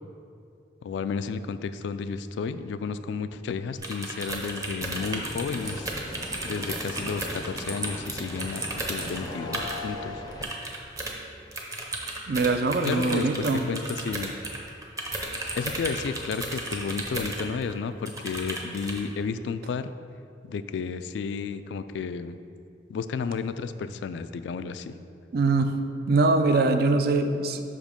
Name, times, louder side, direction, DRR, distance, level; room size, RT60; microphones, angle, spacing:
voice 1, 0.8-5.9 6.4-10.2 12.8-14.4 15.6-19.9 20.5-22.4 22.9-25.0, left 5 dB, 75° left, 12 dB, 0.3 m, -32 dB
sound 1, 3.8-9.8 10.3-11.1 11.5-17.7 18.1-19.0, right 2 dB, 20° right, 0.8 m, -34 dB
sound 2, 4.8-10.4, left 2 dB, 20° left, 0.5 m, -39 dB
voice 2, 12.3-13.7 25.3-25.7 26.1-27.6, right 3 dB, 55° right, 8 dB, 0.4 m, -23 dB
6.0 x 5.1 x 5.1 m, 2.5 s
head